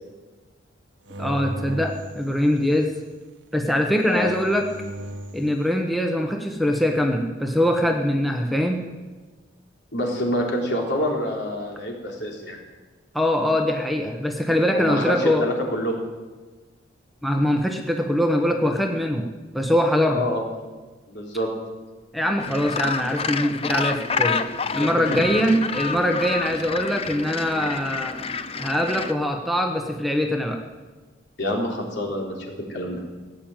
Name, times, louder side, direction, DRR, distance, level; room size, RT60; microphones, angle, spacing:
sound 1, 1.1-3.0 4.0-5.5, right 1 dB, 75° right, 1.3 m, -36 dB
voice 1, 1.2-3.0 3.5-4.7 5.3-8.9 13.1-15.4 17.2-19.3 19.5-20.2 22.1-24.4 24.7-28.2 28.6-30.6, equal, ahead, 2 dB, 1.1 m, -22 dB
voice 2, 9.9-12.6 14.7-16.0 20.1-20.4 21.1-21.5 24.8-25.2 31.4-33.0, left 1 dB, 65° left, -1 dB, 3.6 m, -27 dB
Gull seagull, 22.4-29.1, left 5 dB, 30° left, 0.7 m, -29 dB
17.0 x 8.9 x 9.1 m, 1.3 s
head